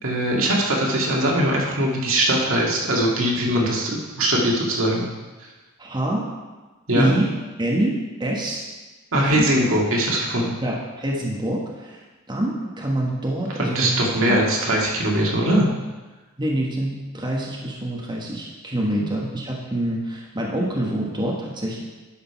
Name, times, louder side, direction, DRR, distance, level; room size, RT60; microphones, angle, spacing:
voice 1, 0.0-5.1 6.9-7.1 9.1-10.6 13.7-15.7 19.0-19.1, right 1 dB, 75° right, -2 dB, 2.0 m, -21 dB
voice 2, 5.8-6.3 6.9-7.3 7.6-8.6 9.1-9.5 10.6-12.0 12.3-14.4 16.4-21.8, right 1 dB, 20° right, -3 dB, 1.3 m, -26 dB
11.5 x 5.1 x 5.7 m, 1.2 s
head